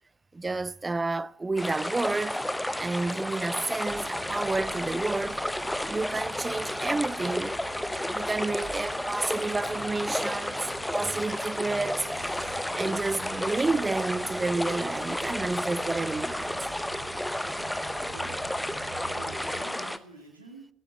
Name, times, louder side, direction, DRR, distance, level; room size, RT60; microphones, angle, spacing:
voice 1, 0.3-2.4 2.8-5.4 5.9-7.6 8.1-16.6, right 3 dB, 20° right, 0.5 m, -30 dB
sound 1, 1.6-20.0, left 1 dB, 5° left, 0.8 m, -32 dB
sound 2, 3.9-19.6, right 5 dB, 55° right, 5.0 m, -47 dB
voice 2, 18.0-18.6 18.9-20.7, right 2 dB, 90° right, 2.2 m, -48 dB
13.5 x 8.7 x 9.5 m
figure-of-eight pair, 55°, 0 cm